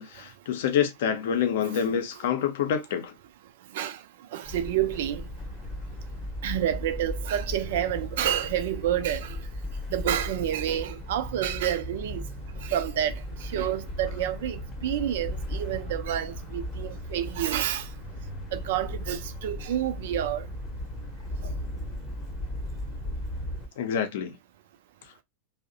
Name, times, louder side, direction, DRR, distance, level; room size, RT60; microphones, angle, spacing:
voice 1, 0.0-3.1 23.8-24.4, left 8 dB, 55° left, 0.6 m, -27 dB
voice 2, 4.3-5.2 6.4-9.4 9.9-12.2 12.6-13.1 13.4-17.9 18.5-20.5, right 11 dB, 55° right, 0.4 m, -29 dB
sound 1, 4.4-23.7, left 1 dB, 20° left, 0.8 m, -36 dB
2.6 x 2.0 x 2.6 m
figure-of-eight pair, 90°, 0 cm